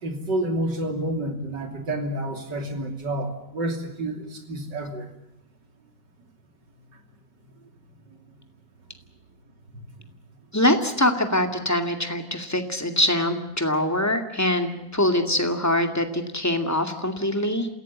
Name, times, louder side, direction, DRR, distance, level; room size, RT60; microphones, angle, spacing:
voice 1, 0.0-5.1, right 1 dB, 70° right, 5 dB, 3.6 m, -29 dB
voice 2, 10.5-17.7, left 1 dB, 10° left, 6 dB, 2.1 m, -23 dB
27.5 x 16.5 x 8.7 m, 0.87 s
omnidirectional pair, 2.0 m